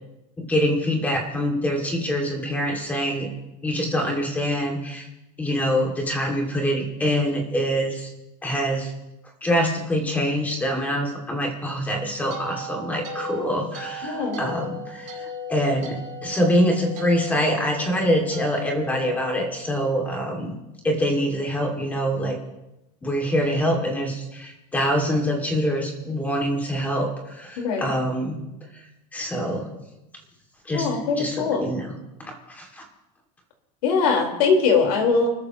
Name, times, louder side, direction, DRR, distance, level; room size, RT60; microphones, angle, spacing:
voice 1, 0.4-3.3 3.6-5.1 5.4-8.1 8.4-8.9 9.4-20.5 20.8-22.4 23.0-28.4 29.1-29.7 30.7-30.9 31.2-32.8, equal, 10° left, 1 dB, 2.3 m, -25 dB
sound 1, 11.8-20.1, left 2 dB, 35° right, 4.1 m, -37 dB
voice 2, 14.0-14.4 27.6-28.0 30.7-31.7 33.8-35.3, left 5 dB, 80° left, 1 dB, 4.3 m, -21 dB
29.5 x 13.5 x 3.0 m, 0.93 s
supercardioid pair, 180°, 19 cm